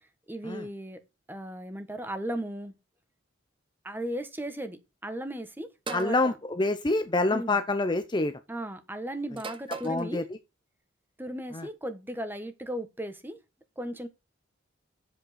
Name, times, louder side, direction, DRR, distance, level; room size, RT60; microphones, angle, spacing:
voice 1, 0.3-1.0 1.3-2.7 3.8-6.4 7.3-7.6 8.5-10.2 11.2-13.4 13.8-14.1, right 1 dB, 10° right, 1.4 m, -36 dB
voice 2, 5.9-8.3 9.8-10.2 11.5-11.6, left 2 dB, 25° left, 0.6 m, -26 dB
sound 1, 5.9-6.2 7.4-7.7 9.4-10.0, right 4 dB, 25° right, 0.9 m, -39 dB
8.0 x 7.3 x 5.8 m
head